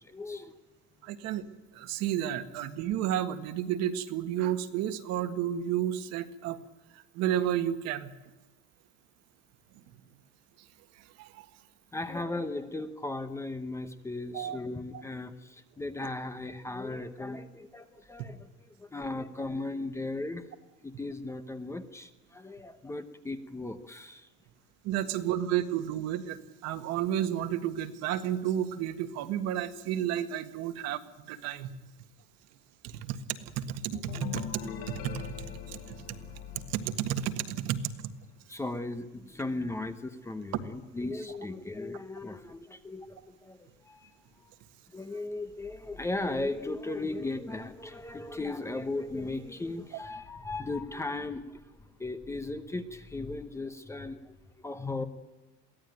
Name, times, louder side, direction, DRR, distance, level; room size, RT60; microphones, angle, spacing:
voice 1, 0.0-0.5 11.9-20.5 20.8-24.3 25.1-25.2 38.5-44.2 44.4-44.5 44.9-51.6 52.0-55.1, left 2 dB, 10° left, 9 dB, 0.9 m, -37 dB
voice 2, 1.0-1.5 1.7-6.6 6.9-8.1 11.0-11.4 14.3-14.6 14.9-15.0 24.8-31.7 32.8-36.2 36.7-38.1, right 10 dB, 55° right, 9 dB, 1.7 m, -32 dB
sound 1, 33.9-37.6, left 8 dB, 60° left, 4.5 m, -41 dB
23.0 x 16.5 x 9.3 m, 1.1 s
cardioid pair, 170°, 31 cm